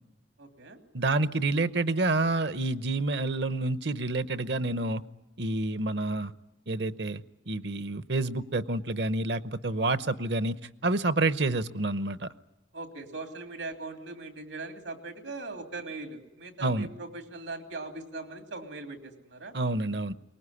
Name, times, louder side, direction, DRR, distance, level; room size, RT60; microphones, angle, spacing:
voice 1, 0.4-0.8 12.7-19.5, right 3 dB, 90° right, 5 dB, 3.0 m, -40 dB
voice 2, 0.9-5.0 5.4-6.3 6.7-10.6 10.8-12.3 16.6-16.9 19.5-20.1, right 2 dB, 60° right, 14 dB, 0.9 m, -28 dB
23.5 x 20.0 x 9.9 m, 0.98 s
head